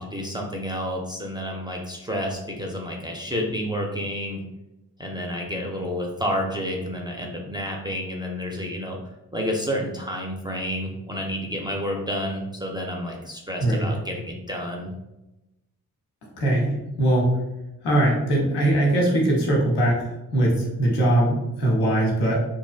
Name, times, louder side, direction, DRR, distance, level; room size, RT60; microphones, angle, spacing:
voice 1, 0.0-4.4 5.0-9.0 9.3-14.9, equal, 10° right, -1 dB, 0.4 m, -30 dB
voice 2, 16.4-17.3 17.8-22.4, right 1 dB, 80° left, -2 dB, 0.8 m, -21 dB
2.5 x 2.0 x 2.4 m, 0.96 s
supercardioid pair, 45°, 40 cm